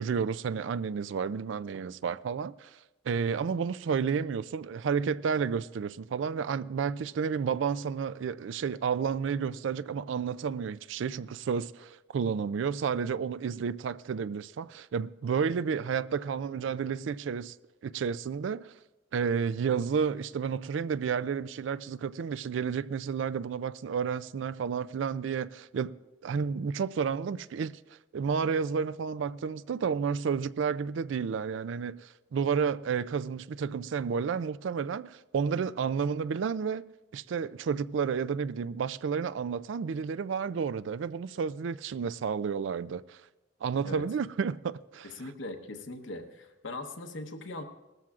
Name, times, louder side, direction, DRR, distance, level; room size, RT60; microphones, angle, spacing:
voice 1, 0.0-2.8 3.0-17.6 17.8-18.7 19.1-26.0 26.2-27.8 28.1-36.8 37.1-43.2 43.6-45.1, right 6 dB, 70° right, 0.3 m, -31 dB
voice 2, 45.0-47.6, left 2 dB, 75° left, 1.0 m, -40 dB
19.0 x 13.5 x 2.4 m
head